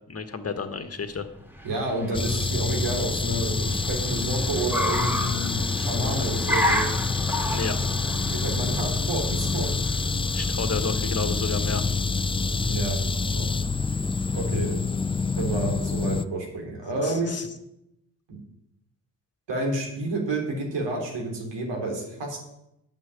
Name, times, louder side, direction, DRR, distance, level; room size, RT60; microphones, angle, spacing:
voice 1, 0.1-1.3 7.5-7.8 10.3-11.9 17.0-17.5, left 4 dB, 30° left, 9 dB, 1.6 m, -31 dB
Car, 1.2-11.4, left 1 dB, 5° right, 2.9 m, -32 dB
voice 2, 1.6-6.9 8.1-9.7 12.6-13.0 13.4-13.5 14.3-14.9 15.4-17.3 18.3-18.4 19.5-22.4, right 2 dB, 65° right, 1 dB, 3.4 m, -30 dB
sound 1, 2.1-16.2, left 4 dB, 15° left, 0.4 m, -27 dB
8.7 x 6.2 x 8.4 m, 0.83 s
hypercardioid pair, 40°, 45 cm